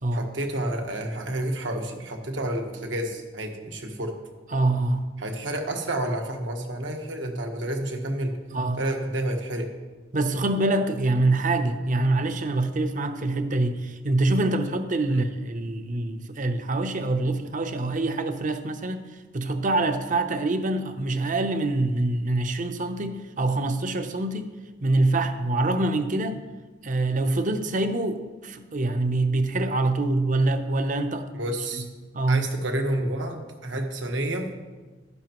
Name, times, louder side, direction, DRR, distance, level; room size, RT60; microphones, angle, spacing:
voice 1, 0.1-4.1 5.2-8.3 8.7-9.7 15.1-15.2 31.3-31.9 32.3-34.5, right 1 dB, 75° right, 3 dB, 1.4 m, -30 dB
voice 2, 4.5-5.0 8.5-8.8 10.1-19.1 19.3-24.5 24.8-26.4 26.8-31.3 31.7-31.8 32.1-32.4, right 2 dB, 45° right, 9 dB, 0.7 m, -25 dB
11.5 x 11.0 x 3.0 m, 1.3 s
head